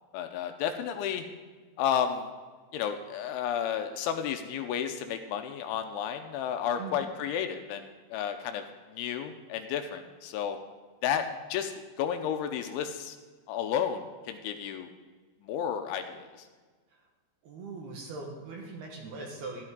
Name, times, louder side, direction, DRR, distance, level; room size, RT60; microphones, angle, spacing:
voice 1, 0.1-1.2 1.8-2.3 2.7-8.6 8.9-10.6 11.0-11.7 12.0-13.2 13.5-14.9 15.4-16.3, left 8 dB, 85° left, 6 dB, 3.0 m, -32 dB
voice 2, 17.4-19.6, right 3 dB, 65° right, 0 dB, 2.9 m, -40 dB
13.0 x 12.0 x 3.7 m, 1.4 s
omnidirectional pair, 5.6 m